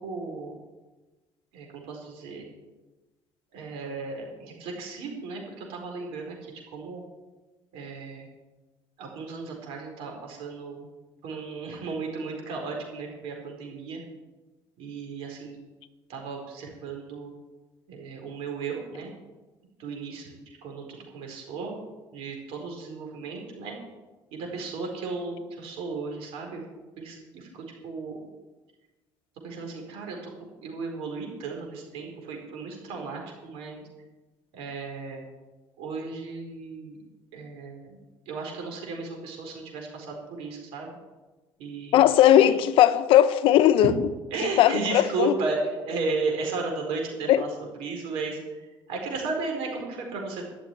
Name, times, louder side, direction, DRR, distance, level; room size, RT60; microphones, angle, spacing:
voice 1, 0.0-0.6 1.5-2.5 3.5-7.0 7.7-8.3 9.0-10.9 11.2-14.0 14.8-15.6 16.1-17.3 17.9-19.1 19.8-21.8 22.1-23.8 24.3-26.6 27.0-28.2 29.4-33.8 34.5-35.2 35.8-37.0 37.3-38.0 38.3-40.9 41.6-42.1 42.5-42.6 44.3-50.5, right 4 dB, 85° right, 4.6 m, -35 dB
voice 2, 41.9-43.9 44.6-45.3 47.3-47.4, left 12 dB, 70° left, 0.9 m, -18 dB
13.0 x 7.1 x 10.0 m
cardioid pair, 140°, 9 cm